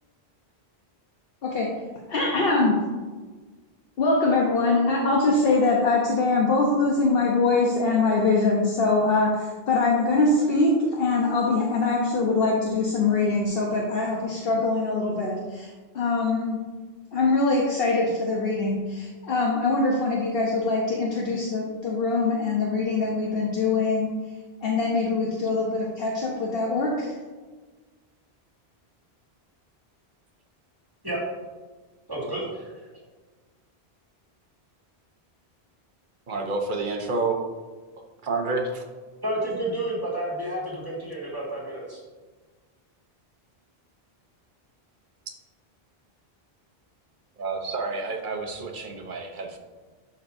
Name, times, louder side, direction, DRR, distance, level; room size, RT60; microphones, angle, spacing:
voice 1, 1.4-2.8 4.0-16.6 17.1-24.4 24.6-27.2, left 3 dB, 65° left, -2 dB, 1.0 m, -23 dB
voice 2, 32.1-32.8 39.2-42.0, right 1 dB, 20° right, -6 dB, 1.9 m, -30 dB
voice 3, 36.3-37.4 38.2-38.8 45.3-45.4 47.4-49.6, right 3 dB, 55° right, 3 dB, 1.0 m, -29 dB
11.5 x 4.3 x 2.6 m, 1.4 s
omnidirectional pair, 1.1 m